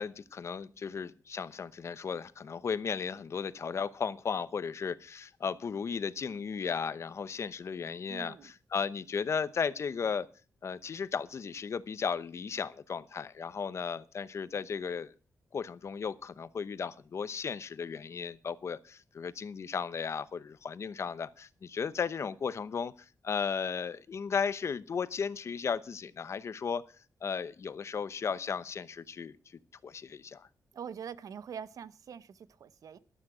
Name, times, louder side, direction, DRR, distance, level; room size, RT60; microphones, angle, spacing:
voice 1, 0.0-10.3 10.6-15.1 15.5-22.9 23.2-26.8 27.2-29.4 29.8-30.5, left 6 dB, 50° left, 0.8 m, -35 dB
voice 2, 8.1-8.5 30.7-33.0, right 7 dB, 70° right, 0.9 m, -44 dB
14.0 x 12.5 x 4.9 m
wide cardioid pair, 135°, 6 cm